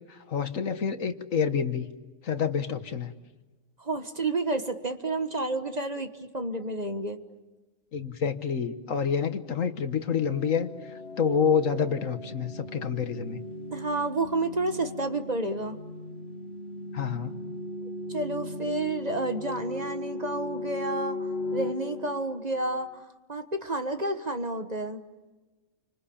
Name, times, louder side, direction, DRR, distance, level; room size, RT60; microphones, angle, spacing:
voice 1, 0.1-1.9 2.2-3.1 7.9-10.7 11.2-13.4 16.9-17.4, left 6 dB, 70° left, 9 dB, 1.6 m, -28 dB
voice 2, 3.8-6.1 6.3-7.2 13.7-15.8 18.1-21.2 21.5-22.9 23.3-25.0, right 2 dB, 30° right, 7 dB, 1.4 m, -30 dB
sound 1, 10.2-22.9, left 2 dB, 50° left, 1.6 m, -38 dB
29.5 x 25.5 x 7.2 m, 1.2 s
omnidirectional pair, 1.4 m